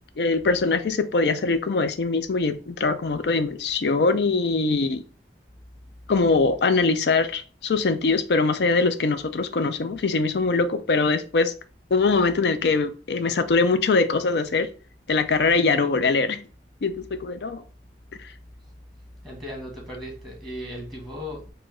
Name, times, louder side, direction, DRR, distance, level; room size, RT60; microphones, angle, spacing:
voice 1, 0.2-5.0 6.1-11.5 11.9-14.7 15.1-16.4 16.8-17.6, left 3 dB, 65° left, 0.5 m, -22 dB
voice 2, 19.2-21.5, equal, ahead, 1.3 m, -36 dB
4.2 x 2.1 x 4.3 m
head